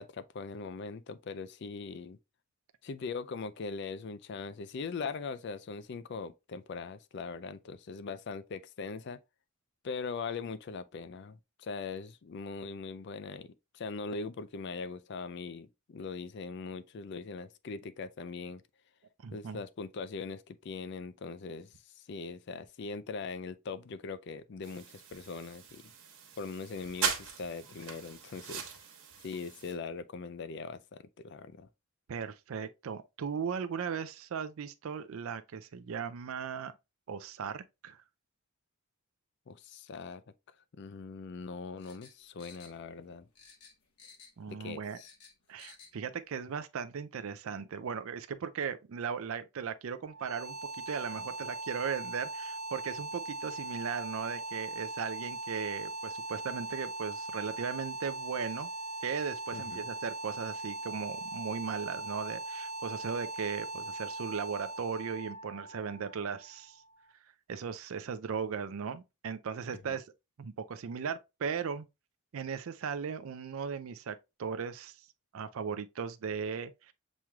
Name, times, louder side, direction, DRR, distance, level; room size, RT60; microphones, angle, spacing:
voice 1, 0.0-2.2 2.8-9.2 9.8-18.6 19.3-25.9 26.4-28.6 29.2-31.7 39.5-40.2 40.7-43.3 44.5-45.1 59.5-59.8 69.7-70.0, left 4 dB, 50° left, 0.4 m, -41 dB
voice 2, 19.2-19.6 32.1-36.7 37.1-38.0 44.4-45.0 45.5-50.6 50.9-58.7 59.0-66.8 67.5-70.0 70.4-71.9 72.3-74.9 75.3-76.9, right 6 dB, 65° right, 0.4 m, -37 dB
sound 1, 24.6-29.7, right 6 dB, 80° right, 1.3 m, -39 dB
sound 2, 41.8-43.1 43.4-44.5 44.8-46.0 46.3-46.4, left 5 dB, 85° left, 1.1 m, -55 dB
sound 3, 50.1-67.0, right 2 dB, 35° right, 1.3 m, -40 dB
7.2 x 3.1 x 2.3 m
head